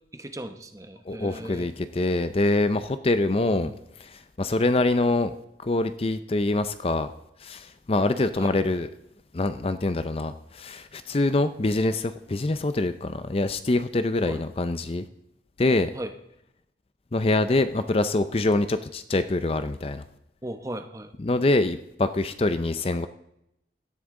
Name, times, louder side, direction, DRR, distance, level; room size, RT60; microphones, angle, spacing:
voice 1, 0.1-1.7 3.4-3.8 8.4-8.5 14.2-14.4 15.9-16.2 20.4-21.1, right 1 dB, 20° right, 8 dB, 0.9 m, -37 dB
voice 2, 1.1-3.7 4.1-5.3 5.6-7.1 7.4-8.9 9.3-15.1 15.6-15.9 17.1-20.0 21.2-23.1, left 2 dB, 35° left, 11 dB, 0.5 m, -25 dB
17.0 x 12.5 x 3.8 m, 0.81 s
head